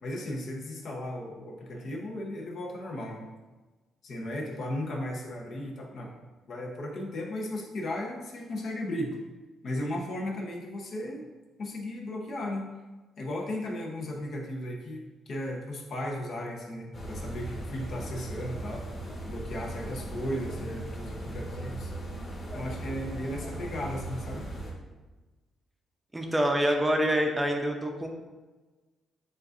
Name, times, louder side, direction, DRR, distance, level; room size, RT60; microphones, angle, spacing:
voice 1, 0.0-3.3 4.0-6.1 6.5-9.2 9.6-11.3 11.6-12.7 13.2-18.9 19.2-21.9 22.5-24.5, left 1 dB, 60° left, 0 dB, 0.9 m, -35 dB
sound 1, 16.9-24.7, right 1 dB, 30° left, 1.4 m, -38 dB
voice 2, 26.1-28.1, equal, 15° right, 2 dB, 0.6 m, -26 dB
7.5 x 2.5 x 2.5 m, 1.2 s
cardioid pair, 90°, 0 cm